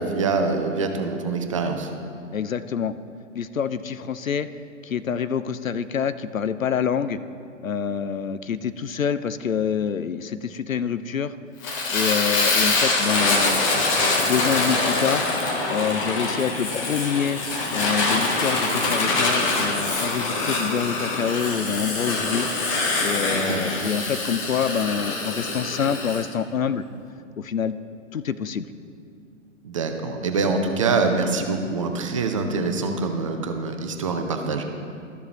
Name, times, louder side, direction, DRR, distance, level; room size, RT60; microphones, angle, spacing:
voice 1, 0.0-1.9 23.3-23.6 29.6-34.6, right 4 dB, 25° right, 5 dB, 0.5 m, -25 dB
voice 2, 2.3-3.0 3.3-4.5 4.8-7.2 7.6-11.3 11.9-13.6 14.2-15.3 15.7-17.4 17.7-22.5 23.0-26.8 27.4-27.8 28.1-28.7, left 7 dB, 85° left, 13 dB, 0.5 m, -26 dB
Fire, 11.6-26.2, left 3 dB, 25° left, 1.0 m, -24 dB
13.0 x 6.8 x 3.1 m, 2.4 s
figure-of-eight pair, 120°, 39 cm